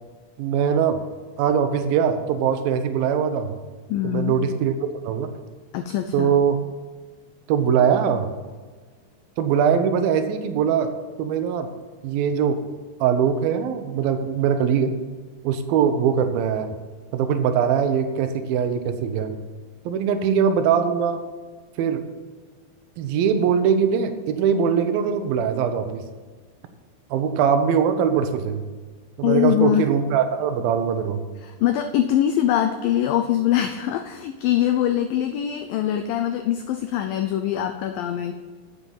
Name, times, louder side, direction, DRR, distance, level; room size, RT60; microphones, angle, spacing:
voice 1, 0.4-1.0 1.4-3.5 4.0-4.7 5.1-5.3 6.1-6.6 7.5-8.3 9.4-10.9 11.2-11.7 12.0-12.6 13.0-14.9 15.4-16.7 17.1-19.4 19.9-21.2 21.8-22.0 23.0-26.0 27.1-28.6 29.2-31.2, right 7 dB, 70° right, 8 dB, 2.5 m, -21 dB
voice 2, 3.9-4.4 5.7-6.3 29.2-29.9 31.4-38.3, left 11 dB, 90° left, 6 dB, 2.0 m, -23 dB
9.8 x 7.7 x 7.2 m, 1.4 s
omnidirectional pair, 4.8 m